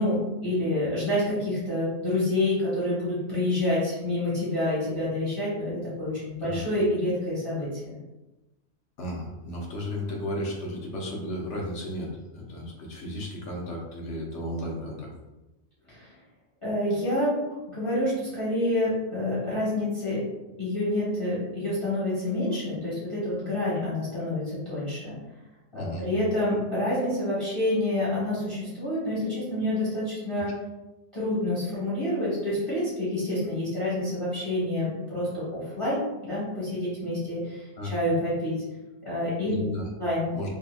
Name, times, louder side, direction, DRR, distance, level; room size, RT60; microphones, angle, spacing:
voice 1, 0.0-7.7 15.9-16.1 16.6-17.4 17.7-20.3 20.6-25.1 25.7-30.5 31.1-38.6 39.0-39.6 40.0-40.3, left 1 dB, 25° left, -10 dB, 1.2 m, -28 dB
voice 2, 9.0-15.1 25.7-26.1 37.8-37.9 39.4-39.9 40.3-40.6, left 1 dB, 80° left, -1 dB, 1.1 m, -34 dB
3.7 x 2.8 x 2.3 m, 1.0 s
omnidirectional pair, 1.2 m